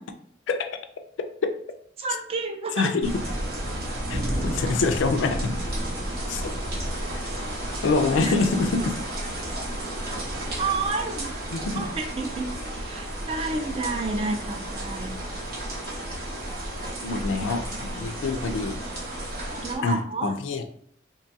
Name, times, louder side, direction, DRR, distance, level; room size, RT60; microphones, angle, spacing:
voice 1, 0.5-0.8 1.4-1.5 2.8-3.1 4.1-5.6 6.3-6.5 7.1-7.2 7.8-9.0 11.5-11.9 17.0-18.8 19.8-20.6, left 3 dB, 70° left, 7 dB, 0.3 m, -25 dB
voice 2, 2.0-2.9 8.1-8.3 10.6-11.3 11.8-15.1 17.0-17.5 19.4-20.3, right 3 dB, 30° right, 5 dB, 0.3 m, -31 dB
sound 1, 3.0-19.8, right 1 dB, 50° right, 0.7 m, -32 dB
3.0 x 2.2 x 2.6 m, 0.63 s
head